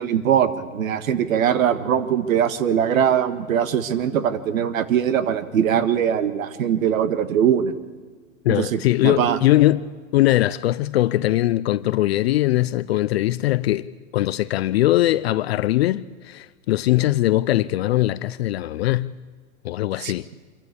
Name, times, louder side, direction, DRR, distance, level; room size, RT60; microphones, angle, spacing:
voice 1, 0.0-7.8 8.5-9.4 20.0-20.1, right 9 dB, 75° right, 1.7 m, -21 dB
voice 2, 8.4-9.8 10.1-19.1 19.6-20.3, left 15 dB, 50° left, 0.5 m, -21 dB
26.5 x 14.0 x 8.4 m
hypercardioid pair, 140°, 41 cm